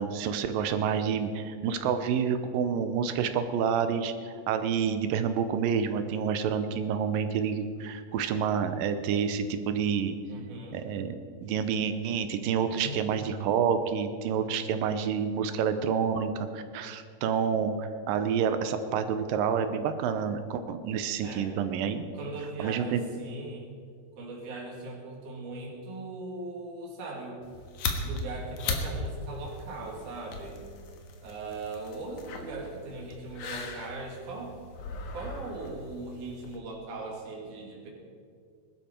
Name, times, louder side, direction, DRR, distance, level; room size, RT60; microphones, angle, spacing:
voice 1, 0.0-10.2 10.7-22.0 22.6-23.0, right 7 dB, 85° right, 9 dB, 2.5 m, -28 dB
voice 2, 0.5-1.2 10.3-10.8 12.8-13.0 21.2-21.5 22.1-23.7 24.2-27.4 28.0-30.6 31.2-34.6 35.1-37.9, right 2 dB, 65° right, -2 dB, 3.8 m, -39 dB
sound 1, 27.4-36.6, left 3 dB, 60° left, 2.5 m, -38 dB
21.0 x 12.5 x 4.4 m, 2.2 s
omnidirectional pair, 4.0 m